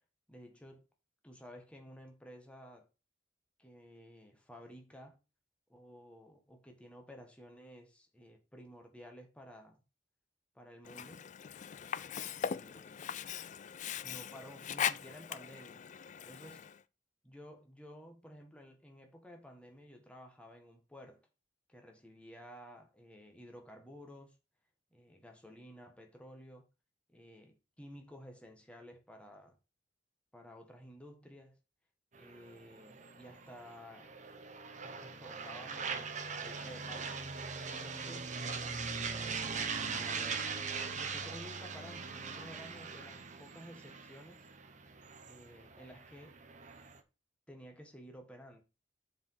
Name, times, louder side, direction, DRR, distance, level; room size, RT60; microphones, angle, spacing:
voice 1, 0.3-0.8 1.2-2.9 3.6-5.2 5.7-9.8 10.5-11.3 12.3-13.0 14.0-15.9 16.2-16.7 17.2-21.3 21.7-24.4 24.9-26.6 27.1-29.6 30.3-31.6 32.1-34.1 34.8-37.2 37.7-38.4 39.7-40.4 40.9-44.4 45.2-46.4 47.5-48.6, equal, 5° left, 1.6 m, -53 dB
Sink (filling or washing), 10.8-16.8, left 8 dB, 40° left, 0.4 m, -40 dB
sound 1, 32.2-47.0, right 5 dB, 40° right, 1.0 m, -41 dB
7.1 x 4.8 x 5.6 m
head